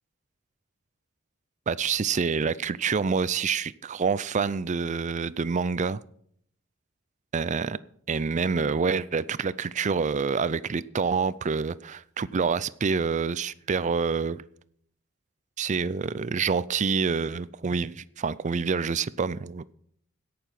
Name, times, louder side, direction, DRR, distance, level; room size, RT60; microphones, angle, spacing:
voice 1, 1.7-6.0 7.3-7.8 8.1-14.4 15.6-19.7, right 5 dB, 35° right, 18 dB, 0.4 m, -27 dB
17.5 x 6.8 x 5.8 m, 0.64 s
head